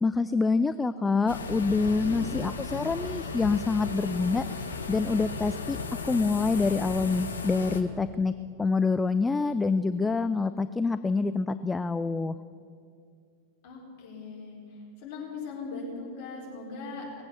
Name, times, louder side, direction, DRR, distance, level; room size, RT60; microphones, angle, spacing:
voice 1, 0.0-4.5 4.9-5.8 6.1-12.4, left 4 dB, 10° left, 12 dB, 0.3 m, -26 dB
sound 1, 1.3-7.8, left 4 dB, 70° left, 1.0 m, -35 dB
voice 2, 13.6-14.6 15.0-17.2, left 4 dB, 45° left, -3 dB, 4.2 m, -39 dB
19.5 x 7.9 x 7.1 m, 2.4 s
figure-of-eight pair, 90°, 0 cm